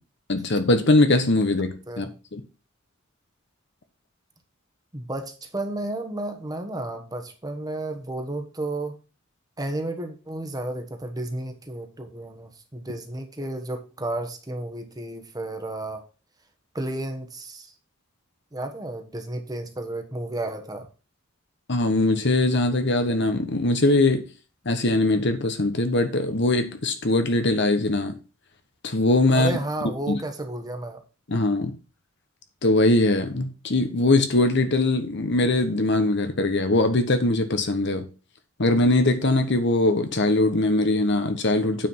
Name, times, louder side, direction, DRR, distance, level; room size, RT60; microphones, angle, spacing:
voice 1, 0.3-2.4 21.7-24.2 24.6-28.2 28.8-29.6 30.1-30.2 31.3-31.7 32.6-38.1 38.6-41.9, left 2 dB, 60° left, 1.2 m, -21 dB
voice 2, 4.9-9.0 9.6-16.0 16.7-17.7 18.5-20.9 29.3-31.0, right 1 dB, 20° right, 1.3 m, -32 dB
8.9 x 5.1 x 5.6 m
head